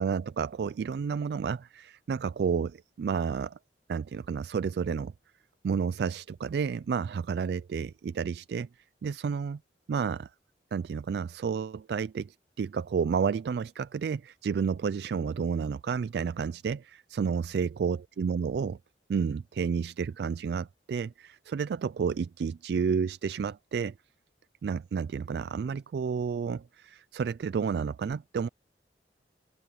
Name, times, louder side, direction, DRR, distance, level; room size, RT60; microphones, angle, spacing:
voice 1, 0.0-3.6 3.9-5.1 5.6-8.7 9.0-9.6 9.9-10.3 10.7-18.8 19.1-23.9 24.6-28.5, right 6 dB, 70° right, 0.3 m, -31 dB
head